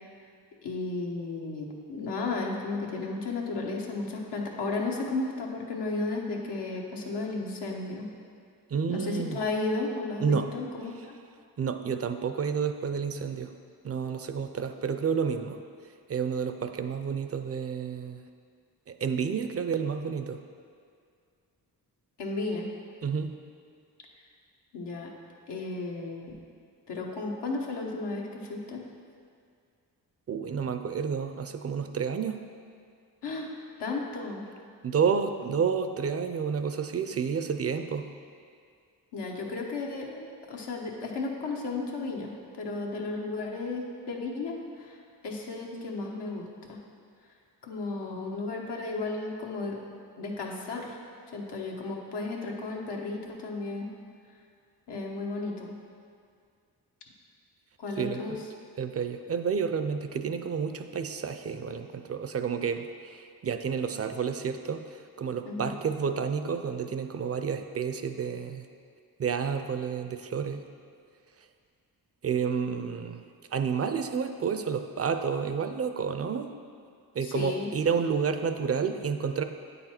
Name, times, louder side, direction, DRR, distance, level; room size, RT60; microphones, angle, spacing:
voice 1, 0.6-8.1 8.9-11.1 22.2-22.7 24.7-25.1 25.5-26.3 26.9-28.8 33.2-33.5 33.8-34.4 39.1-45.0 45.2-46.8 47.6-49.8 50.2-51.0 51.3-53.9 54.9-55.7 57.8-58.4 65.4-65.7 77.2-77.7, left 3 dB, 80° left, -1 dB, 1.0 m, -34 dB
voice 2, 8.7-9.4 10.2-10.5 11.6-13.5 13.8-15.6 16.1-18.2 18.9-20.4 23.0-23.3 30.3-32.4 34.8-38.1 58.0-58.4 58.8-68.7 69.2-70.6 72.2-73.2 73.5-76.5 77.1-79.4, right 6 dB, 35° right, 8 dB, 0.5 m, -30 dB
8.6 x 4.1 x 4.3 m, 2.2 s
cardioid pair, 60°, 41 cm